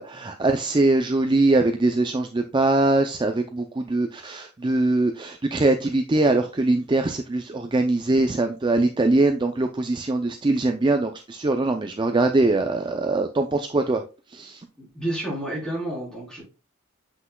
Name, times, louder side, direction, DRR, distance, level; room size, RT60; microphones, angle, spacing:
voice 1, 0.0-14.0 14.3-14.7, right 2 dB, 20° right, 6 dB, 0.4 m, -22 dB
voice 2, 14.8-16.4, right 1 dB, 5° left, -5 dB, 3.8 m, -30 dB
7.9 x 5.9 x 2.3 m, 0.32 s
head